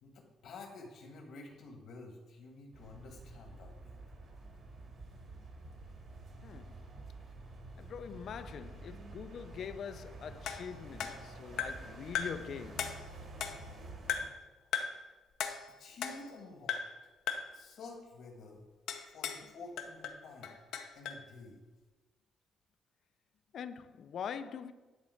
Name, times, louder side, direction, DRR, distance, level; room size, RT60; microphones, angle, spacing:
voice 1, 0.0-4.0 15.8-16.8 17.5-18.6 19.1-20.6 20.9-21.6, left 3 dB, 70° left, 1.5 m, -50 dB
sound 1, 2.7-14.3, right 2 dB, 50° right, 2.0 m, -49 dB
voice 2, 6.4-6.8 7.8-12.9 23.5-24.7, left 7 dB, 50° left, 0.5 m, -43 dB
sound 2, 10.5-11.9 12.2-12.5 12.8-13.8 14.1-14.4 14.7-15.1 15.4-16.4 16.7-17.0 17.3-17.6 18.9-19.5 19.8-21.3, left 7 dB, 85° left, 0.8 m, -38 dB
11.0 x 4.2 x 6.3 m
cardioid pair, 160°, 0 cm